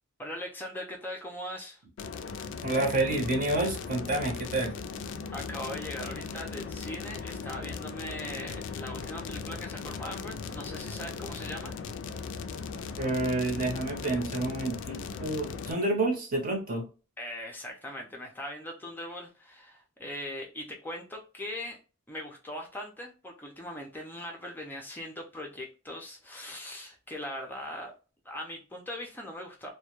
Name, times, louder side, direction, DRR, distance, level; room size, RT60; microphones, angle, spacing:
voice 1, 0.2-1.8 5.3-11.7 17.2-21.8 22.1-27.9 28.2-29.7, left 1 dB, 10° left, 0.4 m, -40 dB
sound 1, 2.0-15.7, left 5 dB, 80° left, 0.3 m, -38 dB
voice 2, 2.6-4.7 13.0-16.9, right 2 dB, 45° right, 0.8 m, -29 dB
2.1 x 2.1 x 2.9 m
head